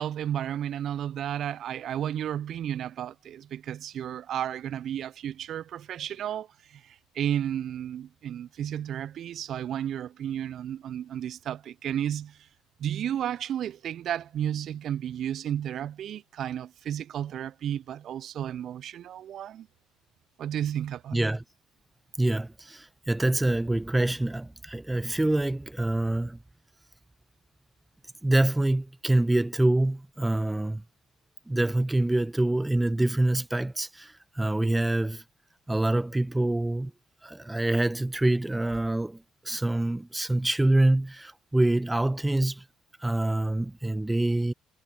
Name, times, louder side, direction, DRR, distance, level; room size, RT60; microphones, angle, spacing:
voice 1, 0.0-12.5 12.8-19.7 20.4-21.2, right 10 dB, 55° right, 0.6 m, -33 dB
voice 2, 21.1-21.4 22.2-26.4 28.2-30.8 31.5-35.2 35.7-36.9 37.2-42.6 43.0-44.5, right 1 dB, 10° right, 1.3 m, -26 dB
hypercardioid pair, 55°, 0 cm